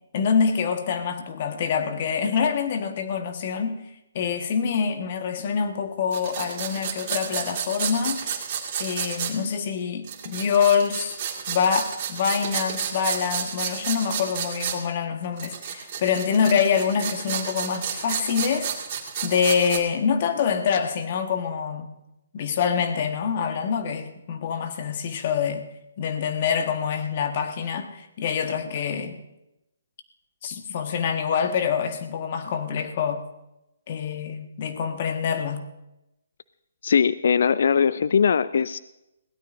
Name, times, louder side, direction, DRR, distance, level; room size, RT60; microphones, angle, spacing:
voice 1, 0.1-3.8 4.1-8.2 8.8-11.2 11.5-18.7 19.2-21.9 22.3-25.7 26.0-29.2 30.4-33.2 33.9-35.6, left 6 dB, 45° left, 6 dB, 1.5 m, -25 dB
sound 1, 6.1-9.4 10.0-14.8 15.4-19.8, right 8 dB, 40° right, 2.1 m, -31 dB
voice 2, 36.8-38.8, left 6 dB, 65° left, 16 dB, 0.4 m, -20 dB
21.5 x 16.5 x 2.6 m, 0.91 s
hypercardioid pair, 140°, 0 cm